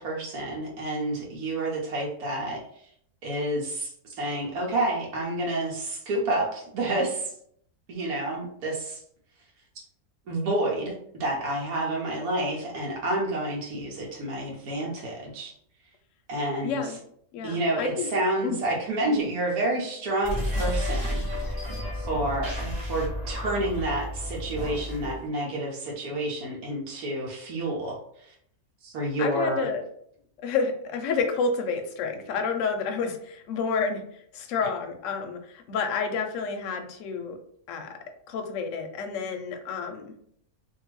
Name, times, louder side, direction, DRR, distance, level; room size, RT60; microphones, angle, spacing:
voice 1, 0.0-2.6 3.2-3.9 4.2-7.3 7.9-9.0 9.8-9.9 10.3-10.9 11.2-15.5 16.3-16.9 17.4-21.2 21.9-28.3 28.8-29.7, right 1 dB, 85° right, -3 dB, 1.2 m, -29 dB
voice 2, 16.6-17.0 17.3-18.1 18.4-18.6 29.2-29.8 30.4-37.4 37.7-37.9 38.3-40.1, left 5 dB, 70° left, 5 dB, 0.8 m, -29 dB
sound 1, 20.2-25.2, left 1 dB, 30° right, 0.9 m, -31 dB
2.7 x 2.6 x 3.0 m, 0.66 s
omnidirectional pair, 1.5 m